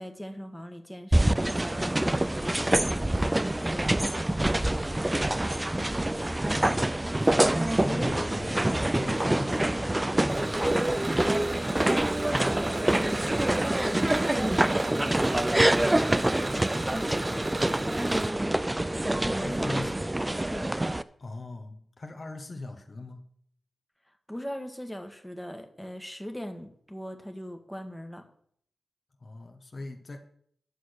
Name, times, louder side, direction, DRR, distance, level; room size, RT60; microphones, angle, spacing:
voice 1, 0.0-5.8 12.8-18.6 19.2-19.9 20.3-20.8 24.3-28.2, equal, 5° left, 5 dB, 1.4 m, -40 dB
sound 1, 1.1-21.0, right 1 dB, 15° right, 0.4 m, -26 dB
voice 2, 6.5-11.4 19.3-19.9 21.2-23.2 29.2-30.2, left 2 dB, 45° left, 5 dB, 1.2 m, -40 dB
sound 2, 10.3-18.3, right 2 dB, 50° right, 2.3 m, -41 dB
9.7 x 6.4 x 6.4 m, 0.64 s
cardioid pair, 60°, 0 cm